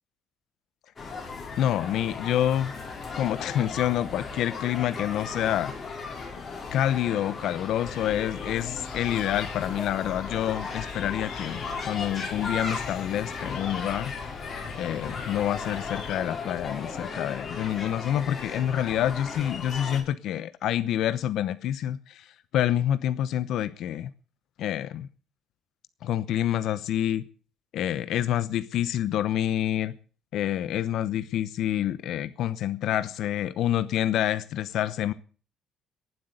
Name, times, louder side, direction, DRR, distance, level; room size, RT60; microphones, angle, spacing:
sound 1, 1.0-20.0, left 4 dB, 30° left, 5.7 m, -36 dB
voice 1, 1.6-2.7 3.1-5.7 6.7-14.1 14.7-24.1 24.6-25.1 26.0-27.2 27.7-29.9 30.3-35.1, left 11 dB, 65° left, 0.8 m, -27 dB
sound 2, 7.8-16.2, left 7 dB, 85° left, 4.1 m, -43 dB
19.0 x 8.0 x 8.0 m
cardioid pair, 140°, 0 cm